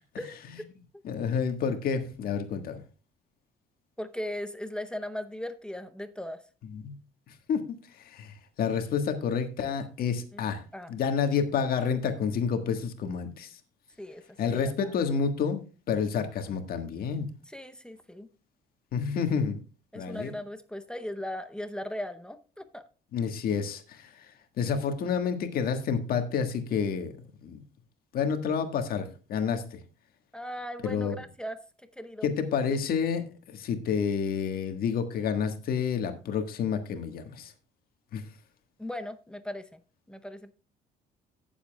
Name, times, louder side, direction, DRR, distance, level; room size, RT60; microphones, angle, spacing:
voice 1, 1.0-2.8 6.7-7.0 7.3-7.6 8.0-10.6 10.9-13.5 14.4-17.3 18.9-19.6 19.9-20.3 23.1-24.3 24.6-27.1 27.4-27.6 28.1-29.8 30.8-31.1 32.2-37.5 38.1-38.2, left 6 dB, 60° left, 1.5 m, -29 dB
voice 2, 4.0-6.4 10.3-10.4 10.7-10.9 14.0-14.7 17.5-18.3 19.9-22.8 30.3-31.6 32.0-32.3 38.8-39.8 40.1-40.5, left 1 dB, 5° left, 0.7 m, -38 dB
17.5 x 7.2 x 2.3 m
cardioid pair, 110°, 17 cm